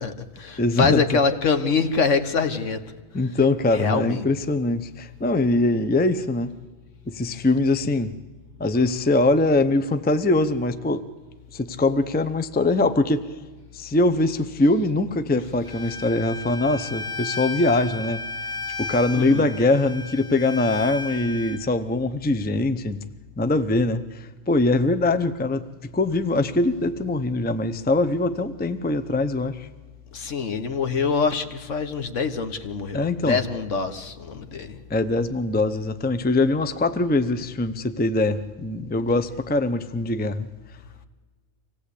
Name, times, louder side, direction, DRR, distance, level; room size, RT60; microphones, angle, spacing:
voice 1, 0.0-2.8 3.7-4.3 19.1-19.5 30.1-34.8, left 5 dB, 70° left, 9 dB, 1.6 m, -25 dB
voice 2, 0.6-1.0 3.1-6.5 7.1-8.1 8.6-11.0 11.5-13.2 13.7-18.2 18.8-23.0 23.4-29.7 32.9-33.4 34.9-40.5, left 2 dB, 10° left, 10 dB, 0.5 m, -22 dB
Bowed string instrument, 15.6-21.6, left 4 dB, 50° left, 1.7 m, -34 dB
25.5 x 17.0 x 8.4 m, 1.4 s
omnidirectional pair, 1.3 m